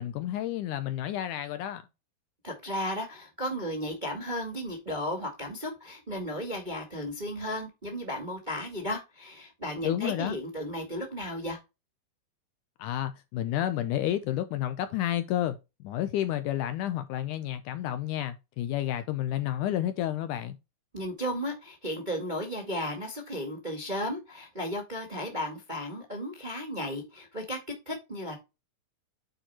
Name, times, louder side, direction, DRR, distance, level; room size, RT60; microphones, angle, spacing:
voice 1, 0.0-1.8 9.8-10.4 12.8-20.6, left 12 dB, 80° left, 1.9 m, -30 dB
voice 2, 2.4-11.6 20.9-27.6 27.8-28.4, equal, 20° right, 1.2 m, -34 dB
9.1 x 4.5 x 4.2 m
omnidirectional pair, 4.1 m